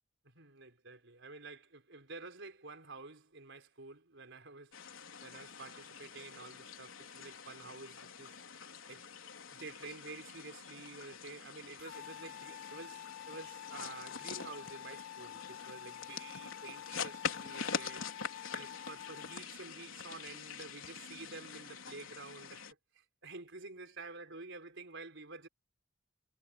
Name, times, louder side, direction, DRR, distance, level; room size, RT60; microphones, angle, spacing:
voice 1, 0.2-4.8 5.2-8.4 8.9-9.1 9.5-18.1 18.5-22.6 22.9-25.5, right 3 dB, 65° right, 4.5 m, -50 dB
sound 1, 4.7-22.7, left 6 dB, 85° left, 3.8 m, -45 dB
sound 2, 11.8-19.4, left 11 dB, 50° left, 2.4 m, -49 dB
head